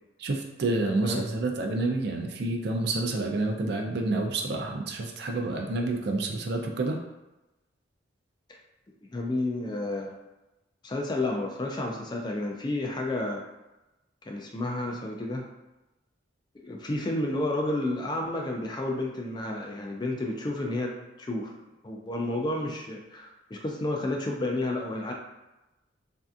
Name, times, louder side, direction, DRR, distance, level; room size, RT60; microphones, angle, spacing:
voice 1, 0.2-7.0, right 2 dB, 55° right, 2 dB, 0.4 m, -29 dB
voice 2, 9.1-10.2 10.8-13.4 14.3-15.4 16.5-21.5 21.8-25.1, left 2 dB, 20° left, 1 dB, 0.3 m, -31 dB
3.3 x 2.6 x 2.4 m, 1.0 s
head